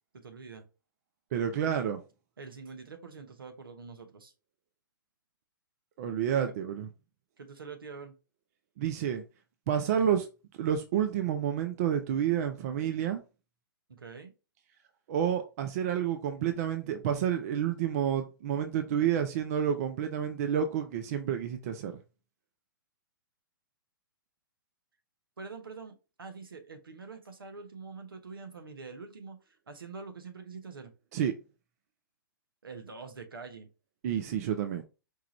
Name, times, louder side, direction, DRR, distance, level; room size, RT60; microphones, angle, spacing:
voice 1, 0.1-0.6 2.4-4.3 6.3-6.6 7.4-8.1 13.9-14.3 25.4-30.9 32.6-33.7, right 4 dB, 75° right, 0.9 m, -45 dB
voice 2, 1.3-2.0 6.0-6.9 8.8-9.2 9.7-10.3 10.6-13.2 15.1-22.0 31.1-31.3 34.0-34.8, right 9 dB, 45° right, 0.5 m, -29 dB
4.6 x 2.4 x 3.0 m
figure-of-eight pair, 120°, 12 cm